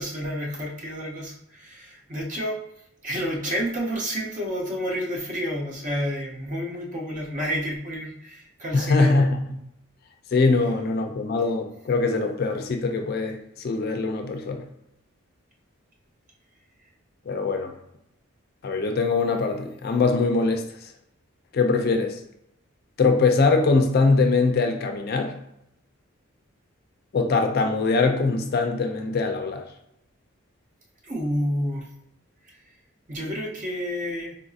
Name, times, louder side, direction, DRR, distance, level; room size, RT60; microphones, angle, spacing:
voice 1, 0.0-2.6 3.0-9.2 31.0-31.8 33.1-34.3, equal, 35° right, -2 dB, 0.6 m, -29 dB
voice 2, 8.7-9.5 10.3-14.6 17.3-17.7 18.6-20.6 21.5-22.2 23.0-25.3 27.1-29.7, left 3 dB, 45° left, 5 dB, 0.3 m, -22 dB
3.9 x 2.6 x 2.3 m, 0.76 s
head